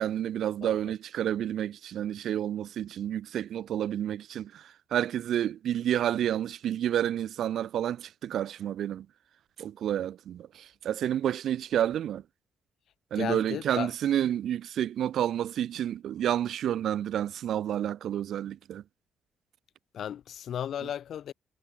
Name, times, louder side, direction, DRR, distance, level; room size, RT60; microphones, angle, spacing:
voice 1, 0.0-9.1 9.6-12.2 13.1-18.8, right 10 dB, 70° right, 2.5 m, -30 dB
voice 2, 13.1-13.9 19.9-21.3, left 9 dB, 65° left, 1.3 m, -34 dB
cardioid pair, 90°, 0 cm